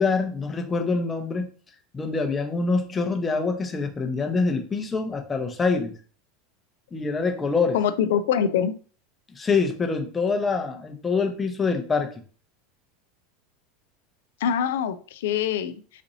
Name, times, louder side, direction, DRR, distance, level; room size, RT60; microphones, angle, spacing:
voice 1, 0.0-1.5 1.9-5.9 6.9-7.8 9.3-12.1, left 4 dB, 20° left, 4 dB, 0.7 m, -25 dB
voice 2, 7.7-8.7 14.4-16.0, left 8 dB, 75° left, 12 dB, 0.3 m, -24 dB
4.1 x 2.6 x 2.7 m, 0.40 s
hypercardioid pair, 95°, 0 cm